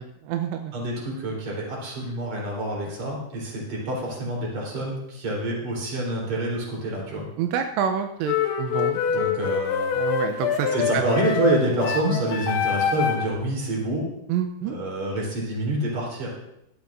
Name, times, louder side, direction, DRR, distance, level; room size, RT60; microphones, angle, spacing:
voice 1, 0.0-0.7 7.4-9.0 9.9-11.0 12.1-12.2 14.3-14.8, right 8 dB, 85° right, 6 dB, 2.9 m, -28 dB
voice 2, 0.7-7.3 9.1-9.9 10.7-14.1 14.6-16.4, right 1 dB, 40° right, -3 dB, 4.7 m, -27 dB
sound 1, 8.2-13.4, left 7 dB, 75° left, 3.3 m, -25 dB
17.0 x 12.5 x 2.6 m, 0.81 s
omnidirectional pair, 5.2 m